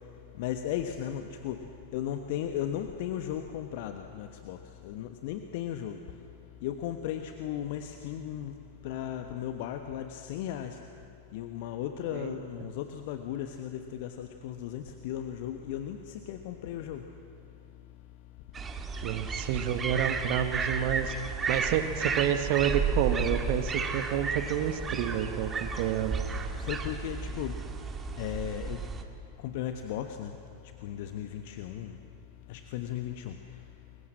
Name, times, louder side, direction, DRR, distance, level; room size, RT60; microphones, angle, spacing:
voice 1, 0.3-6.0 6.6-8.6 8.8-10.8 11.3-17.0 26.6-27.6 28.2-28.8 29.4-30.4 30.6-32.0 32.5-33.6, left 10 dB, 50° left, 6 dB, 1.3 m, -36 dB
voice 2, 12.1-12.7 19.0-21.1 21.5-26.2, right 10 dB, 45° right, 9 dB, 1.7 m, -29 dB
sound 1, 18.5-29.0, right 4 dB, 20° right, 2.1 m, -33 dB
29.5 x 22.0 x 7.6 m, 2.8 s
figure-of-eight pair, 90°, 0 cm